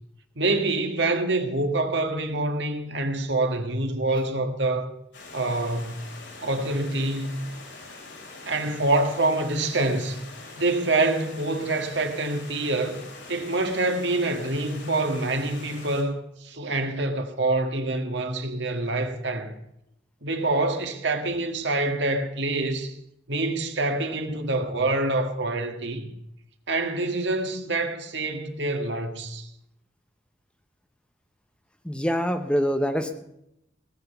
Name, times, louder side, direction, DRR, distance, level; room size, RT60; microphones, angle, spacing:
voice 1, 0.4-4.9 5.3-6.0 6.4-7.4 8.4-10.2 10.6-13.0 13.3-19.5 20.2-22.9 23.3-26.1 26.7-29.5, right 2 dB, 70° right, 1.7 m, -26 dB
Stream, 5.1-16.0, left 3 dB, 75° left, 3.8 m, -44 dB
voice 2, 31.8-33.2, equal, 5° left, 0.8 m, -25 dB
17.5 x 7.9 x 6.8 m
head